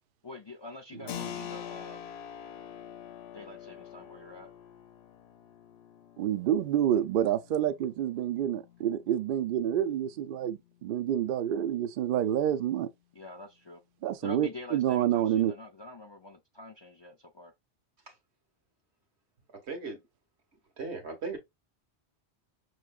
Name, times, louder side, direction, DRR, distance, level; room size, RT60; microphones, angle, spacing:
voice 1, 0.2-2.0 3.3-4.5 13.2-13.8 14.2-17.5, left 2 dB, 40° left, 0.4 m, -45 dB
Keyboard (musical), 1.1-11.4, left 9 dB, 75° left, 0.8 m, -46 dB
voice 2, 6.2-12.9 14.0-15.5, right 10 dB, 60° right, 0.7 m, -28 dB
voice 3, 19.7-20.0 20.8-21.4, right 4 dB, 85° right, 1.5 m, -36 dB
5.5 x 3.1 x 2.3 m
omnidirectional pair, 1.1 m